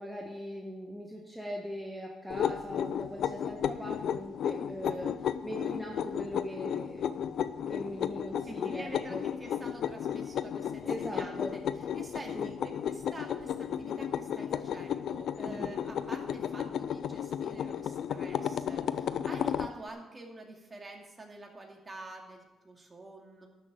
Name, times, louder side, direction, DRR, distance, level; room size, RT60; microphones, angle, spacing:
voice 1, 0.0-7.1 7.7-9.2 10.8-11.6 12.3-12.5 15.4-15.7, equal, 5° right, -1 dB, 1.5 m, -40 dB
sound 1, 2.3-19.7, left 9 dB, 70° left, 0.5 m, -34 dB
voice 2, 8.4-11.6 11.9-23.5, right 2 dB, 25° right, 1 dB, 2.4 m, -47 dB
12.0 x 6.5 x 7.7 m, 1.1 s
cardioid pair, 90°, 0 cm